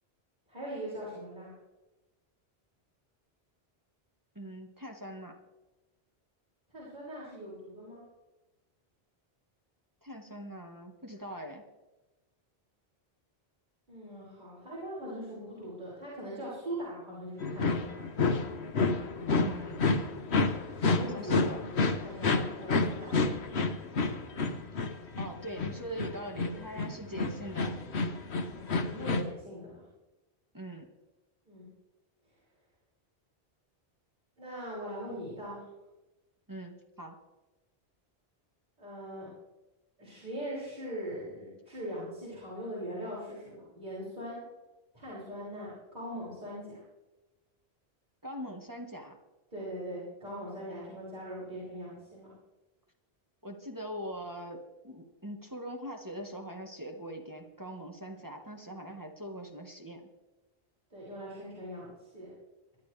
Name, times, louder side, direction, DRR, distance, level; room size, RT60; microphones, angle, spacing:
voice 1, 0.5-1.5 6.7-8.0 13.9-18.1 20.7-21.5 22.0-23.3 28.5-29.8 31.5-31.7 34.4-35.7 38.8-39.3 40.0-44.4 44.9-46.8 49.5-52.3 60.9-62.3, equal, 45° right, -10 dB, 6.5 m, -41 dB
voice 2, 4.3-5.4 10.0-11.6 19.3-19.9 21.0-21.6 25.2-27.8 30.5-30.9 36.5-37.2 48.2-49.2 53.4-60.0, equal, 20° right, 2 dB, 1.6 m, -42 dB
sound 1, 17.4-29.2, left 3 dB, 85° left, 1.4 m, -30 dB
23.5 x 12.0 x 3.4 m, 1.1 s
omnidirectional pair, 1.1 m